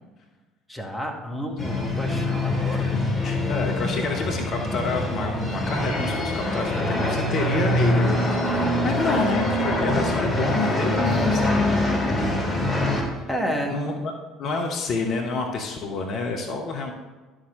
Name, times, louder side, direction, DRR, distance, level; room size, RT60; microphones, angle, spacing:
voice 1, 0.7-2.9 13.3-13.8, equal, ahead, -1 dB, 1.9 m, -30 dB
sound 1, 1.6-13.0, left 1 dB, 25° left, 3.1 m, -24 dB
voice 2, 2.7-11.7 12.1-12.3 13.0-13.2 13.7-14.1 14.4-16.9, left 3 dB, 50° left, 2 dB, 1.1 m, -28 dB
11.0 x 6.5 x 3.8 m, 1.3 s
figure-of-eight pair, 55°, 0 cm